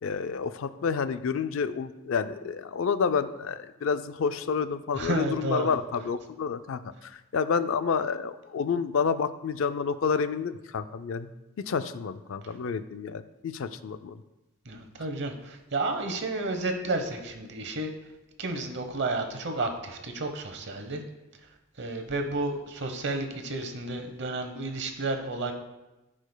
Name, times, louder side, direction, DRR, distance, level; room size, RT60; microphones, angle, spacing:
voice 1, 0.0-11.3 11.6-14.2, left 6 dB, 65° left, 11 dB, 0.4 m, -29 dB
voice 2, 4.9-5.7 14.7-17.9 18.4-21.0 21.8-25.5, right 2 dB, 55° right, 6 dB, 0.9 m, -31 dB
14.5 x 5.0 x 2.2 m, 1.0 s
head